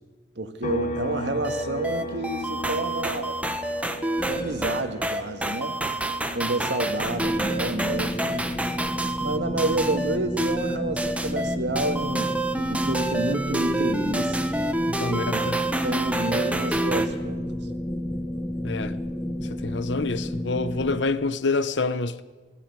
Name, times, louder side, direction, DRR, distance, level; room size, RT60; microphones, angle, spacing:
voice 1, 0.4-3.4 4.2-5.8 6.3-8.4 9.2-12.3 12.7-14.5 15.0-15.5 15.8-17.5, right 2 dB, 70° right, 1.8 m, -29 dB
sound 1, 0.6-14.2 14.5-16.7, equal, 45° left, 1.6 m, -39 dB
sound 2, 1.4-17.1, right 1 dB, 10° right, 1.2 m, -28 dB
sound 3, 4.2-4.9 7.0-21.0, left 1 dB, 20° left, 2.5 m, -31 dB
voice 2, 14.9-15.6 18.6-19.0 19.5-22.2, left 3 dB, 75° left, 1.0 m, -27 dB
20.0 x 15.0 x 9.8 m
head